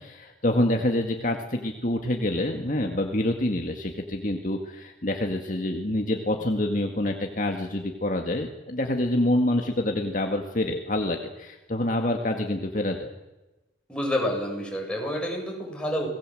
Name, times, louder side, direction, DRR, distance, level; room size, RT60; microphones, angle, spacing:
voice 1, 0.0-13.1, left 1 dB, 45° left, 3 dB, 2.0 m, -27 dB
voice 2, 13.9-16.1, left 1 dB, 5° left, -1 dB, 7.5 m, -28 dB
27.5 x 20.0 x 7.8 m, 1.0 s
head